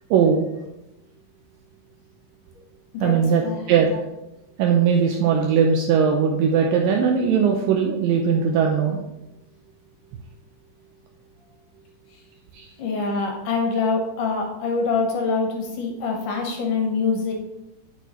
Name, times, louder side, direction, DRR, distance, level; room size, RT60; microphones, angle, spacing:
voice 1, 0.1-0.5 3.0-4.0 4.6-9.0 12.5-12.7, right 6 dB, 85° right, 2 dB, 2.0 m, -19 dB
voice 2, 12.8-17.3, left 4 dB, 70° left, 1 dB, 2.2 m, -24 dB
9.0 x 5.9 x 3.1 m, 0.93 s
omnidirectional pair, 4.6 m